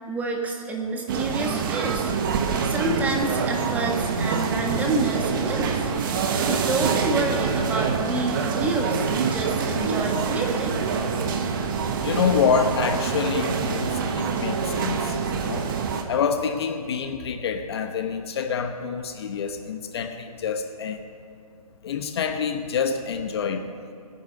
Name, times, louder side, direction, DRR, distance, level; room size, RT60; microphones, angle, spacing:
voice 1, 0.1-2.1 2.6-5.9 6.4-10.8, right 2 dB, 10° right, 0 dB, 1.5 m, -28 dB
sound 1, 1.1-16.0, right 5 dB, 35° right, 1.4 m, -26 dB
voice 2, 12.0-15.1 15.4-15.7 16.1-21.0 21.8-23.7, left 6 dB, 45° left, 7 dB, 1.1 m, -26 dB
19.5 x 9.9 x 6.7 m, 2.6 s
hypercardioid pair, 150°, 19 cm